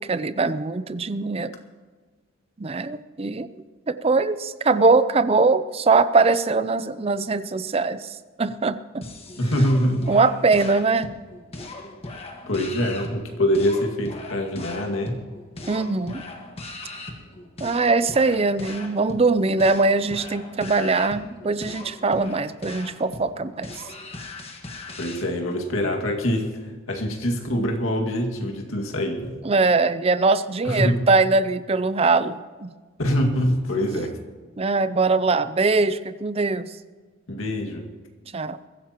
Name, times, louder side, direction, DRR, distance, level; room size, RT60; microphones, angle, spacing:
voice 1, 0.0-1.5 2.6-3.5 3.9-8.8 10.1-11.1 15.7-16.2 17.6-23.7 29.4-32.7 34.6-36.6 38.3-38.6, right 3 dB, 30° right, 14 dB, 0.5 m, -21 dB
sound 1, 9.0-25.3, left 2 dB, 30° left, 1.5 m, -39 dB
voice 2, 9.4-10.1 12.5-15.2 25.0-26.5 26.9-29.4 30.6-31.1 33.0-34.2 37.3-37.9, equal, 85° left, 2 dB, 2.0 m, -24 dB
22.0 x 15.0 x 3.0 m, 1.4 s
head